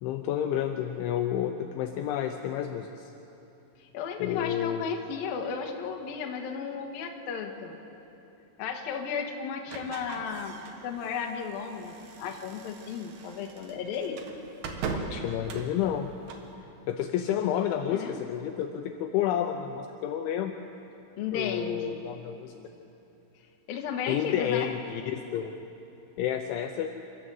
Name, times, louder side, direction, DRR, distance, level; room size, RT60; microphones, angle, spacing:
voice 1, 0.0-3.1 4.2-4.9 15.1-16.1 16.9-20.5 21.3-22.5 24.1-25.5 26.2-26.9, left 10 dB, 80° left, 5 dB, 2.9 m, -30 dB
voice 2, 3.9-7.8 8.6-10.6 10.8-14.2 17.9-18.2 21.2-22.0 23.7-24.7, left 6 dB, 65° left, 3 dB, 2.6 m, -34 dB
sound 1, 9.7-16.5, right 4 dB, 65° right, 2.4 m, -40 dB
29.0 x 13.0 x 7.8 m, 2.9 s
omnidirectional pair, 5.8 m